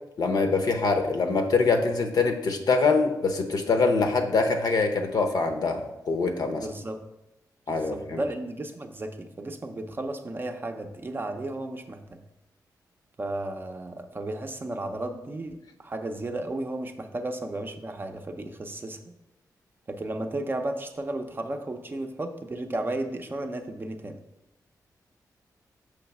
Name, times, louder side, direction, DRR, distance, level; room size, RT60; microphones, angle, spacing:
voice 1, 0.2-6.7 7.7-8.2, left 4 dB, 65° left, 6 dB, 0.8 m, -24 dB
voice 2, 6.6-7.0 7.7-12.2 13.2-19.1 19.9-24.2, right 2 dB, 30° right, 6 dB, 0.5 m, -34 dB
6.5 x 3.1 x 5.8 m, 0.92 s
wide cardioid pair, 110°, 7 cm